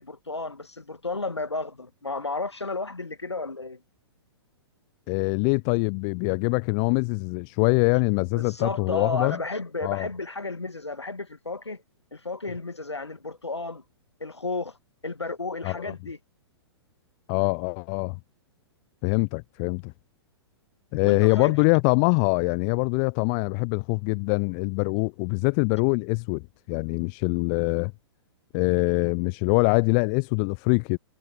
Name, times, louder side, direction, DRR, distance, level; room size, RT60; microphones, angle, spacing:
voice 1, 0.0-3.8 8.3-11.8 12.1-13.8 14.2-14.8 15.0-16.2 21.0-21.6, left 3 dB, 80° left, 2.0 m, -33 dB
voice 2, 5.1-9.4 9.8-10.1 15.6-15.9 17.3-18.2 19.0-19.9 20.9-26.4 26.7-27.9 28.5-31.0, left 40 dB or more, 30° left, 0.6 m, -24 dB
figure-of-eight pair, 110°, 14 cm